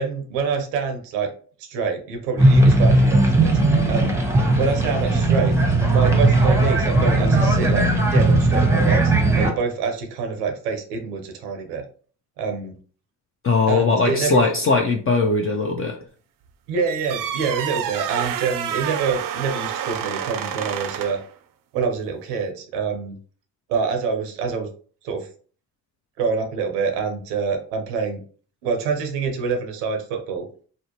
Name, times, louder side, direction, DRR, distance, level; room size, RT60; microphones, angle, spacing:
voice 1, 0.0-1.3 1.6-3.6 3.9-4.2 4.6-5.6 5.9-7.8 8.1-11.8 12.4-12.8 13.7-14.4 16.7-21.2 21.7-23.2 23.7-24.7 25.0-25.3 26.2-28.2 28.6-30.5, right 5 dB, 90° right, 4 dB, 0.7 m, -26 dB
sound 1, 2.4-9.5, right 2 dB, 5° right, 0.8 m, -17 dB
voice 2, 13.4-16.0, left 4 dB, 30° left, 2 dB, 0.5 m, -20 dB
sound 2, 16.8-21.3, right 9 dB, 50° right, 0.5 m, -28 dB
2.6 x 2.1 x 2.8 m, 0.42 s
hypercardioid pair, 45°, 45 cm